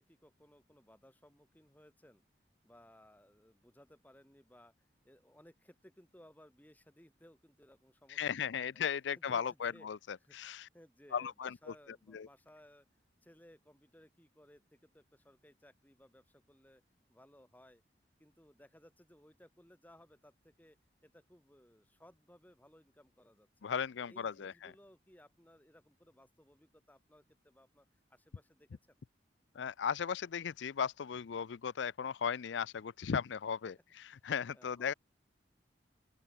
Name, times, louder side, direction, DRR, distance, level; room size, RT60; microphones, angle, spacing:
voice 1, 0.0-2.2 2.6-8.8 9.2-9.9 10.2-12.9 13.2-16.8 17.1-17.8 18.2-20.8 21.0-23.5 24.0-29.0 34.5-34.9, equal, 10° left, 2.4 m, -62 dB
voice 2, 8.1-10.7 11.1-11.5 12.1-12.3 23.6-24.5 29.6-34.9, left 7 dB, 75° left, 0.4 m, -36 dB
open air
head